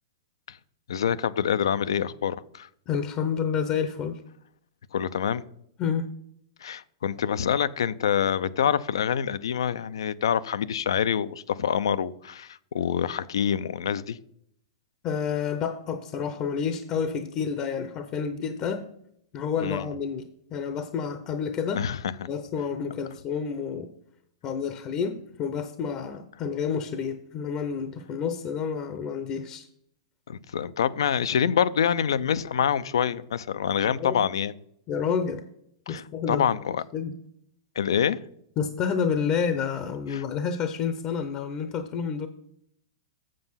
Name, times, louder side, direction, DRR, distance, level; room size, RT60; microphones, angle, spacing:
voice 1, 0.9-2.7 4.9-5.4 6.6-14.2 19.6-19.8 21.7-22.1 30.3-34.5 35.9-36.8 37.8-38.2 40.1-40.2, left 8 dB, 80° left, 0.5 m, -26 dB
voice 2, 2.9-4.2 5.8-6.1 15.0-18.8 19.3-21.9 22.3-23.9 24.4-29.6 34.0-34.1 34.9-35.4 35.9-36.4 36.9-37.1 38.6-42.3, left 6 dB, 30° left, 0.7 m, -29 dB
7.6 x 6.9 x 5.7 m
hypercardioid pair, 145°, 2 cm